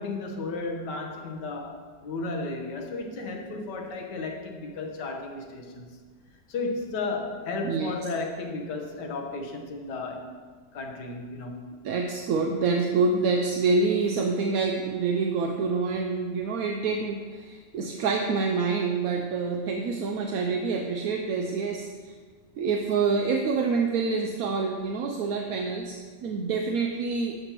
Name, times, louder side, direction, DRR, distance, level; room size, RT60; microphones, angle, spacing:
voice 1, 0.0-6.0 6.5-10.3 10.7-11.7, left 3 dB, 80° left, 3 dB, 1.6 m, -34 dB
voice 2, 11.8-22.1 22.6-27.4, right 4 dB, 70° right, 3 dB, 1.0 m, -27 dB
12.0 x 6.9 x 3.0 m, 1.5 s
omnidirectional pair, 1.8 m